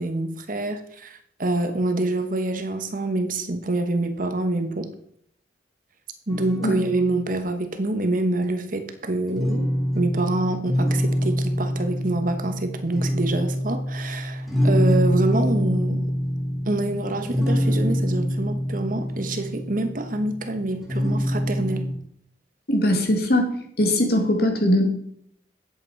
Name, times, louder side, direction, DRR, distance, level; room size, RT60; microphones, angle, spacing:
voice 1, 0.0-4.9 6.3-16.0 16.7-21.8, right 2 dB, 50° right, 7 dB, 1.2 m, -26 dB
sound 1, 6.3-7.4 9.3-22.0, equal, ahead, 2.6 m, -25 dB
voice 2, 22.7-23.5 23.8-24.8, left 1 dB, 60° left, 4 dB, 2.2 m, -20 dB
10.5 x 8.1 x 4.6 m, 0.68 s
head